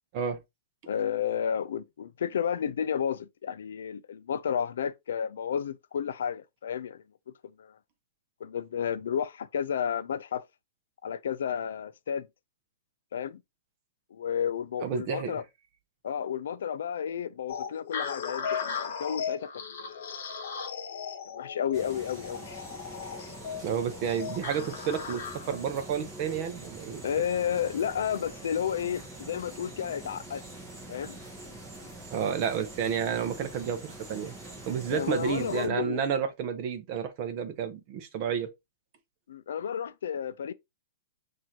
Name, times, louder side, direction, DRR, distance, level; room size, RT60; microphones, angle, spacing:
voice 1, 0.9-7.0 7.6-7.8 8.4-10.4 11.0-12.3 13.1-13.4 14.1-15.4 16.0-20.0 21.3-22.5 27.0-30.4 30.9-31.2 34.9-36.0 39.3-40.5, left 8 dB, 70° left, 0.3 m, -32 dB
voice 2, 14.8-15.4 23.6-27.0 32.1-34.3 34.7-38.5, right 7 dB, 30° right, 0.6 m, -31 dB
sound 1, 17.5-25.7, left 6 dB, 50° left, 0.9 m, -37 dB
sound 2, 21.7-35.7, right 1 dB, 10° right, 0.9 m, -45 dB
6.0 x 2.5 x 2.8 m
hypercardioid pair, 180°, 0 cm